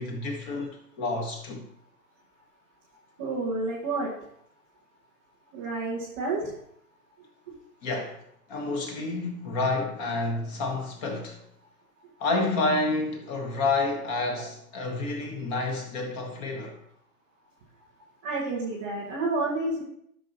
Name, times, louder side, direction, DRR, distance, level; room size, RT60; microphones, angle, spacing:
voice 1, 0.0-1.6 7.8-8.2 8.5-11.4 12.2-16.8, left 3 dB, 30° left, 1.6 m, -29 dB
voice 2, 3.2-4.1 5.5-6.5 18.2-19.8, right 3 dB, 10° right, 0.4 m, -29 dB
12.0 x 6.0 x 3.0 m
hypercardioid pair, 130°, 46 cm